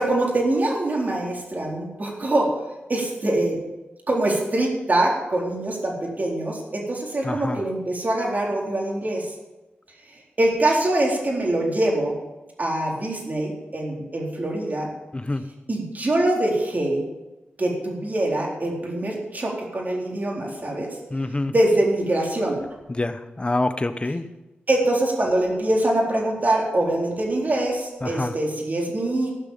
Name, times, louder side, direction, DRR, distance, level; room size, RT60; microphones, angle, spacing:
voice 1, 0.0-2.5 2.9-3.6 4.1-9.3 10.1-12.2 12.6-14.9 15.7-17.0 17.6-20.9 21.5-22.6 24.7-29.3, right 1 dB, 45° right, -1 dB, 4.0 m, -24 dB
voice 2, 7.2-7.6 15.1-15.4 21.1-21.5 22.9-24.2 28.0-28.3, left 2 dB, 25° left, 10 dB, 1.0 m, -26 dB
15.5 x 6.2 x 8.6 m, 1.1 s
cardioid pair, 55°, 4 cm